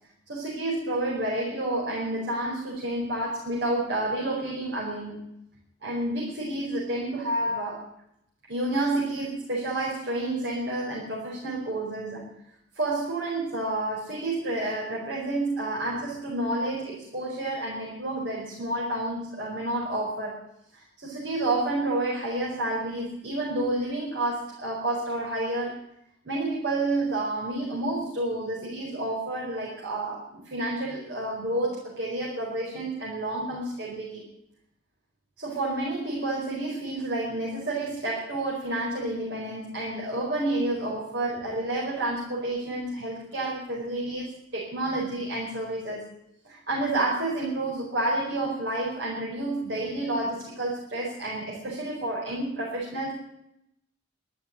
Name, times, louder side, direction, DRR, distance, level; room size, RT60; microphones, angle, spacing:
voice 1, 0.3-5.3 5.8-7.9 8.5-12.3 12.7-20.4 20.7-25.8 26.2-34.3 35.4-46.1 46.4-53.1, right 2 dB, 65° right, -4 dB, 4.8 m, -30 dB
12.5 x 12.0 x 9.0 m, 0.78 s
head